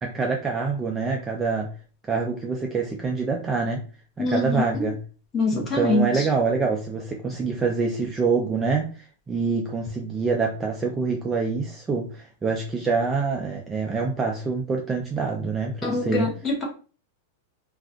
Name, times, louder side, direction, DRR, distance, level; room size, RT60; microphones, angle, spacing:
voice 1, 0.0-1.7 2.1-3.9 4.2-5.0 5.5-16.3, right 4 dB, 10° right, 0.3 m, -26 dB
voice 2, 4.2-4.6 5.3-6.1 15.8-16.6, left 2 dB, 20° left, 1.0 m, -24 dB
2.4 x 2.3 x 3.6 m
supercardioid pair, 165°, 0 cm